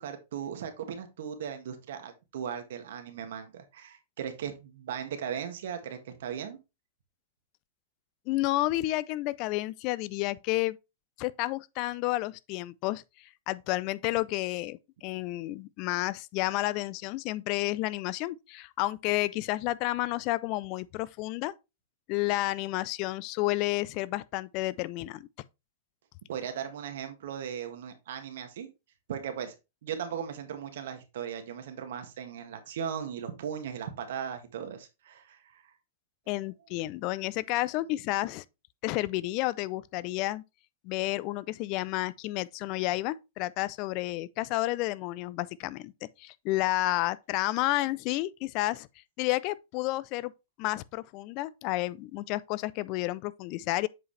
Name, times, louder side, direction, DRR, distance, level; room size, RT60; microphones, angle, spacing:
voice 1, 0.0-6.6 26.3-28.7 29.1-29.5 29.8-35.6, right 8 dB, 70° right, 1.7 m, -37 dB
voice 2, 8.3-10.8 11.2-21.5 22.1-25.3 36.3-38.4 38.8-40.4 40.8-45.9 46.2-48.9 49.2-50.3 50.6-53.9, left 18 dB, 45° left, 0.4 m, -31 dB
7.9 x 4.9 x 3.3 m
hypercardioid pair, 135°, 0 cm